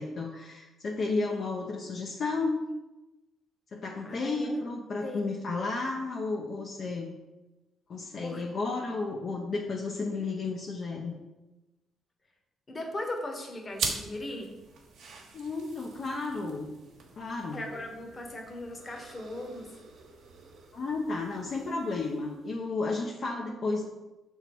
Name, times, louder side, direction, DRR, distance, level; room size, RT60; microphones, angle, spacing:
voice 1, 0.0-2.7 3.7-7.1 7.9-11.1 15.3-16.7 17.2-17.6 20.7-23.8, left 3 dB, 55° left, -1 dB, 0.7 m, -32 dB
voice 2, 4.0-4.6 5.0-5.2 8.2-8.4 12.7-14.5 17.5-19.7, left 1 dB, 30° left, 2 dB, 1.2 m, -38 dB
sound 1, 13.7-22.7, right 4 dB, 80° right, 1.1 m, -42 dB
5.9 x 3.6 x 4.5 m, 1.1 s
cardioid pair, 90°, 0 cm